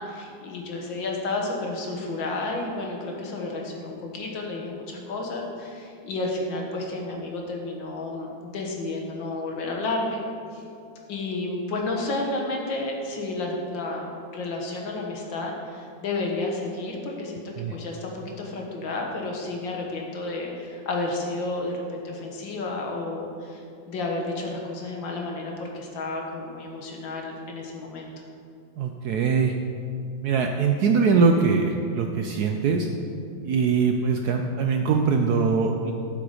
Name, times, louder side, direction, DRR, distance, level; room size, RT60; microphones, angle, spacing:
voice 1, 0.0-10.2 10.5-10.6 11.1-28.1, left 2 dB, 70° left, 0 dB, 2.0 m, -31 dB
voice 2, 28.8-29.5 30.2-32.9 33.4-35.9, right 5 dB, 75° right, 4 dB, 0.9 m, -22 dB
12.5 x 5.9 x 4.9 m, 2.5 s
omnidirectional pair, 2.2 m